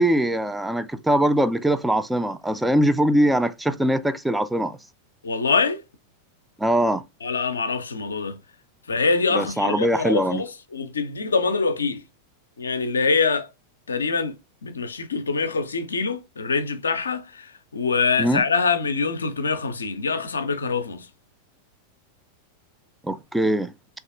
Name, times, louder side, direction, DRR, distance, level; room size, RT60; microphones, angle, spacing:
voice 1, 0.0-4.8 6.6-7.0 9.3-10.4 18.2-18.4 23.0-23.7, right 1 dB, 5° right, 0.3 m, -22 dB
voice 2, 5.2-5.8 7.2-8.4 8.9-12.0 12.6-13.5 13.9-14.4 14.6-21.1, left 4 dB, 75° left, 0.4 m, -24 dB
3.3 x 2.4 x 2.4 m
figure-of-eight pair, 90°, 0 cm